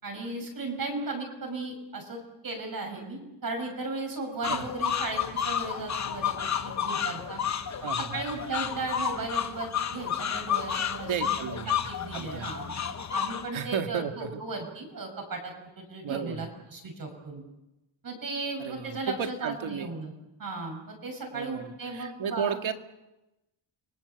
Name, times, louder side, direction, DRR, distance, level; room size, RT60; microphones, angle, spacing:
voice 1, 0.0-7.4 8.1-11.5 11.9-17.4 18.0-20.1 20.4-22.6, right 3 dB, 45° right, 3 dB, 6.4 m, -36 dB
sound 1, 4.4-13.5, left 8 dB, 35° left, 1.0 m, -31 dB
voice 2, 7.8-8.2 11.0-11.8 12.1-12.5 13.5-14.4 16.0-16.5 18.6-19.9 21.3-22.7, right 7 dB, 70° right, 6 dB, 2.1 m, -34 dB
30.0 x 24.5 x 7.1 m, 0.97 s
wide cardioid pair, 180°, 48 cm